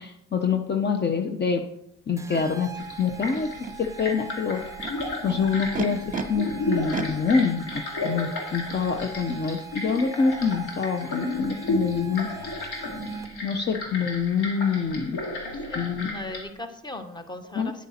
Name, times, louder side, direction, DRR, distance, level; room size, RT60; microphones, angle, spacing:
voice 1, 0.0-1.6 2.1-2.7 3.0-3.5 3.8-4.6 5.2-6.0 6.3-12.3 13.4-15.2 15.7-16.1 17.6-17.7, left 5 dB, 35° left, 5 dB, 0.8 m, -26 dB
sound 1, 2.2-13.6, right 7 dB, 10° right, 0.6 m, -44 dB
Animal, 2.3-2.4 3.2-3.7 4.6-6.2 6.9-8.1, right 5 dB, 25° right, 0.9 m, -34 dB
sound 2, 2.8-16.4, left 1 dB, 90° left, 2.3 m, -33 dB
voice 2, 15.4-17.9, left 2 dB, 15° left, 8 dB, 1.2 m, -38 dB
9.6 x 7.7 x 4.3 m, 0.77 s
cardioid pair, 90°, 30 cm